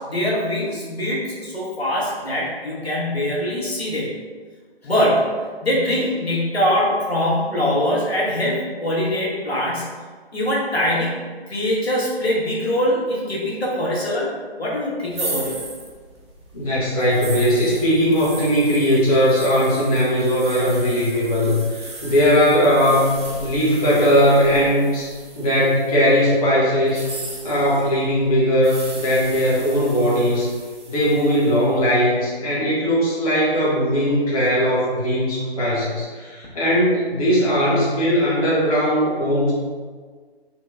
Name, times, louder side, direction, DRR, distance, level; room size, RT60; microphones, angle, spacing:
voice 1, 0.1-4.1 4.8-5.3 5.6-9.9 10.3-14.3 14.6-15.6, left 1 dB, 75° left, -6 dB, 1.5 m, -23 dB
sound 1, 15.1-26.1 26.8-31.7, right 2 dB, 25° right, 0.5 m, -37 dB
voice 2, 16.5-23.1 23.4-25.1 25.3-27.1 27.4-30.5 30.9-39.5, equal, 35° left, -8 dB, 0.9 m, -19 dB
4.3 x 2.2 x 3.7 m, 1.5 s
figure-of-eight pair, 140°, 32 cm